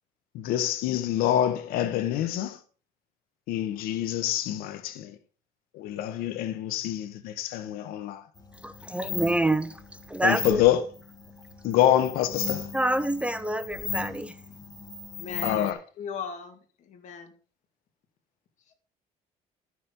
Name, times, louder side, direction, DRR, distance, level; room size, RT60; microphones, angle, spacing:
voice 1, 0.3-2.6 3.5-5.1 5.7-8.2 10.2-10.8 11.6-12.7 15.4-15.8, left 12 dB, 85° left, 1.0 m, -26 dB
sound 1, 8.4-15.7, left 5 dB, 25° left, 2.1 m, -37 dB
voice 2, 8.6-9.8 10.1-10.6 12.7-14.4, right 1 dB, 10° right, 0.5 m, -27 dB
voice 3, 15.2-15.7 16.0-17.3 18.7-18.8, left 6 dB, 55° left, 2.7 m, -38 dB
12.5 x 6.7 x 5.3 m
cardioid pair, 135°, 15 cm